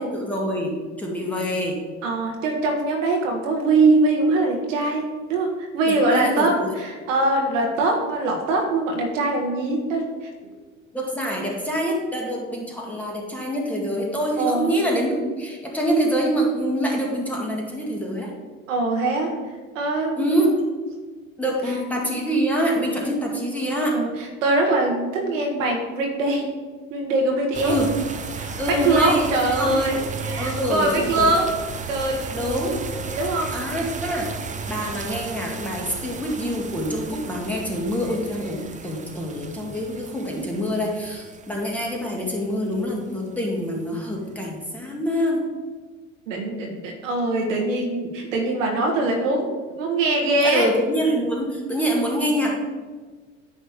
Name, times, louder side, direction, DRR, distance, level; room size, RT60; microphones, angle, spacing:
voice 1, 0.0-1.8 5.9-6.7 10.9-18.3 20.2-20.5 21.4-24.0 27.6-27.9 28.6-29.2 29.6-29.8 30.4-31.3 32.3-32.8 33.5-34.3 34.7-45.4 50.4-52.5, equal, 5° left, -2 dB, 2.0 m, -25 dB
voice 2, 2.0-10.3 14.4-14.7 18.7-19.4 19.7-20.3 21.4-21.8 23.9-26.5 26.9-27.8 28.3-32.4 32.9-33.5 46.3-49.5 49.8-50.7, right 2 dB, 70° right, 1 dB, 1.5 m, -23 dB
sound 1, 27.5-43.4, right 5 dB, 20° right, 0.8 m, -34 dB
9.7 x 3.5 x 6.7 m, 1.4 s
figure-of-eight pair, 70°, 39 cm